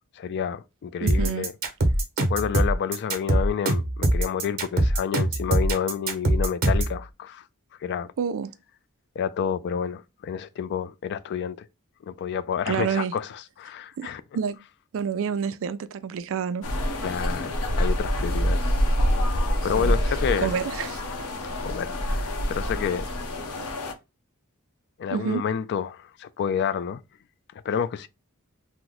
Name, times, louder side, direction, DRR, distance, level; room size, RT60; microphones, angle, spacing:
voice 1, 0.2-1.5 2.3-7.4 7.8-8.1 9.2-11.7 12.1-14.2 17.0-18.7 19.6-20.5 21.6-23.1 25.0-27.0 27.6-28.1, left 7 dB, 50° left, 0.3 m, -29 dB
voice 2, 1.0-1.5 8.2-8.5 12.7-13.1 14.0-14.6 14.9-16.6 19.8-19.9 20.4-21.0 25.1-25.4, right 7 dB, 60° right, 0.4 m, -28 dB
sound 1, 1.1-7.0, right 1 dB, 45° right, 0.9 m, -22 dB
sound 2, 16.6-23.9, equal, 75° left, 0.7 m, -26 dB
3.0 x 2.1 x 3.7 m
head